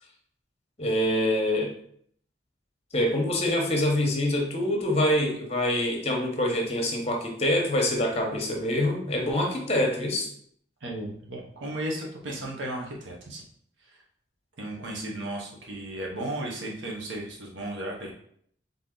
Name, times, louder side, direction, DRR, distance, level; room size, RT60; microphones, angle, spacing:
voice 1, 0.8-1.7 2.9-10.3, left 1 dB, 35° left, 2 dB, 0.9 m, -25 dB
voice 2, 10.8-13.4 13.8-14.0 14.6-18.1, right 1 dB, 75° right, -2 dB, 1.0 m, -35 dB
3.9 x 3.6 x 3.8 m, 0.65 s
head